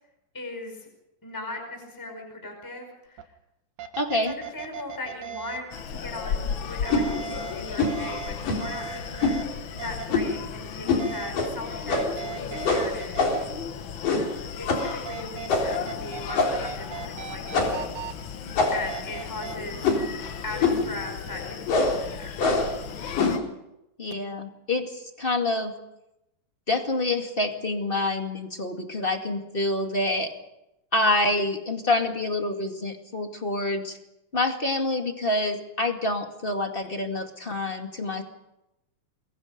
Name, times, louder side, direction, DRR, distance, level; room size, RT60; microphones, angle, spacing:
voice 1, 0.3-0.9 1.2-3.3 4.2-13.2 14.6-17.9 18.7-19.9 20.4-22.4, left 2 dB, 5° left, 3 dB, 4.9 m, -38 dB
sound 1, 3.2-3.3 3.8-5.6 6.9-9.4 9.8-10.0 11.0-11.5 11.9-13.2 14.8-16.4 16.6-18.1 18.9-19.6, right 8 dB, 65° right, 2.8 m, -38 dB
voice 2, 4.0-4.3 24.0-25.7 26.7-30.3 30.9-34.0 34.3-38.2, left 2 dB, 20° left, 4 dB, 1.6 m, -27 dB
Screaming, 5.7-23.4, left 7 dB, 80° left, 1.1 m, -36 dB
sound 2, 6.9-7.1 7.8-8.0 8.4-8.7 9.2-9.4 10.1-10.4 10.9-11.1 11.3-11.5 11.9-12.2 12.7-13.5 14.0-14.4 14.7-14.9 15.5-15.8 16.3-16.7 17.5-17.9 18.6-19.0 19.8-20.1 20.6-20.9 21.7-22.0 22.4-22.8 23.2-23.5, left 3 dB, 65° left, 5.5 m, -24 dB
28.5 x 23.0 x 5.3 m, 0.88 s
omnidirectional pair, 4.2 m